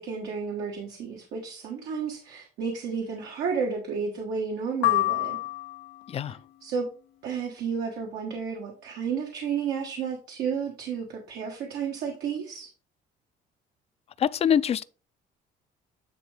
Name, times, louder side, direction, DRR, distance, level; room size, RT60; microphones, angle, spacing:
voice 1, 0.0-5.4 6.6-6.9 7.2-12.7, right 6 dB, 80° right, 1.3 m, -32 dB
sound 1, 4.8-6.1, left 19 dB, 90° left, 0.6 m, -26 dB
voice 2, 14.2-14.8, left 8 dB, 35° left, 0.4 m, -24 dB
9.5 x 3.6 x 3.3 m
cardioid pair, 110°, 17 cm